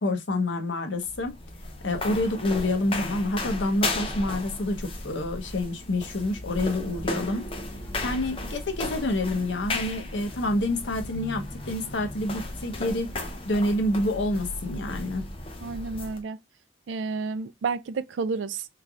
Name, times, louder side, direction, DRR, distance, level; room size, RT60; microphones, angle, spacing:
voice 1, 0.0-1.4 1.8-7.5 8.0-13.2 13.4-15.2, left 1 dB, 75° left, 0.8 m, -28 dB
sound 1, 1.0-16.2, left 2 dB, 30° left, 0.6 m, -35 dB
sound 2, 7.8-8.5 8.8-10.3 10.7-12.2 12.5-13.8, left 2 dB, 10° left, 2.3 m, -52 dB
voice 2, 15.6-16.4 16.9-18.7, right 4 dB, 80° right, 0.4 m, -30 dB
3.8 x 3.2 x 2.3 m
head